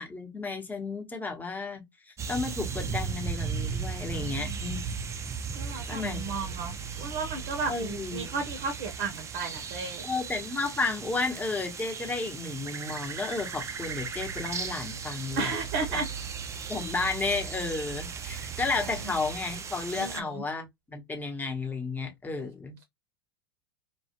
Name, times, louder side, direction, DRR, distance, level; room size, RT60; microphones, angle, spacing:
voice 1, 0.0-1.8 2.3-4.9 5.9-6.7 7.7-8.4 10.0-15.5 15.9-16.0 16.7-22.8, left 3 dB, 15° left, 0.9 m, -33 dB
sound 1, 2.2-20.2, right 6 dB, 20° right, 0.4 m, -36 dB
voice 2, 4.1-4.6 5.5-10.1 15.4-16.1 18.3-18.5 19.9-20.4 22.4-22.5, right 4 dB, 60° right, 0.7 m, -34 dB
2.3 x 2.2 x 2.8 m
hypercardioid pair, 100°, 13 cm